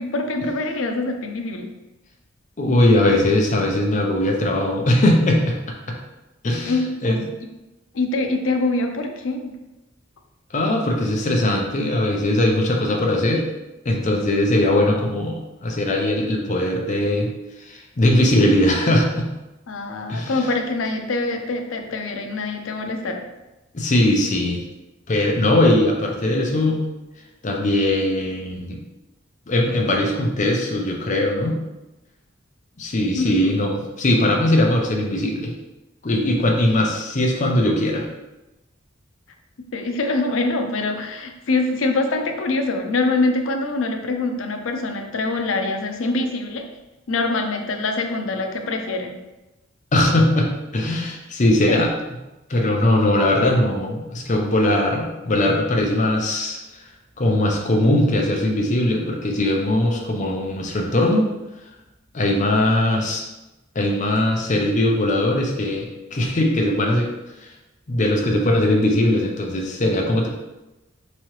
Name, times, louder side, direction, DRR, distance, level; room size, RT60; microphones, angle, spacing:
voice 1, 0.0-1.7 6.7-7.5 7.9-9.6 14.1-14.2 19.7-23.2 33.1-33.5 39.6-46.7 47.1-49.2 51.7-51.8, left 2 dB, 85° left, 5 dB, 0.5 m, -24 dB
voice 2, 2.6-5.6 5.9-6.0 6.4-7.2 10.5-13.4 13.8-17.3 17.6-19.3 20.1-20.5 23.7-24.6 25.1-26.8 27.4-28.8 29.5-31.6 32.8-35.5 36.0-38.1 49.9-51.9 52.5-56.8 57.2-61.3 62.1-63.2 63.7-67.1 67.4-67.5 67.9-70.3, left 1 dB, 40° left, 1 dB, 0.6 m, -20 dB
3.7 x 3.0 x 3.0 m, 1.0 s
head